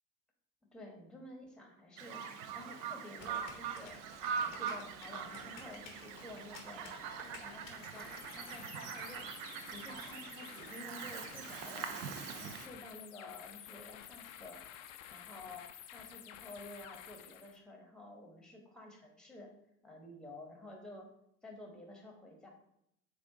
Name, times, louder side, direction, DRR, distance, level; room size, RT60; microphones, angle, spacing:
voice 1, 0.7-4.0 4.3-9.2 9.7-11.9 12.3-14.6 15.1-19.5 19.8-21.1 21.4-22.5, left 2 dB, ahead, 1 dB, 0.9 m, -51 dB
Bird vocalization bird call bird song, 2.0-12.7, right 7 dB, 55° right, 0.5 m, -42 dB
sound 1, 3.2-8.5, left 4 dB, 75° left, 0.9 m, -53 dB
sound 2, 7.7-17.6, left 11 dB, 50° left, 0.5 m, -51 dB
7.4 x 2.6 x 2.7 m, 0.76 s
figure-of-eight pair, 60°, 50 cm